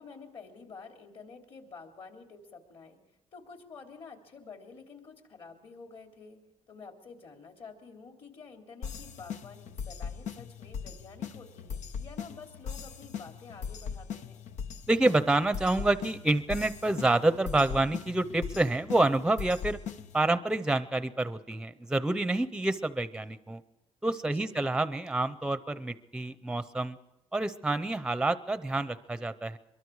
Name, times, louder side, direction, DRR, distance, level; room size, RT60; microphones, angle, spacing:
voice 1, 0.0-3.0 3.3-6.4 6.7-14.5 24.3-24.8, left 4 dB, 50° left, 3 dB, 3.4 m, -49 dB
sound 1, 8.8-20.3, left 7 dB, 85° left, 1.0 m, -40 dB
voice 2, 14.9-19.8 20.1-23.6 24.0-27.0 27.3-29.6, right 2 dB, 5° right, 13 dB, 0.7 m, -28 dB
24.0 x 22.5 x 4.8 m, 0.92 s
cardioid pair, 135°, 12 cm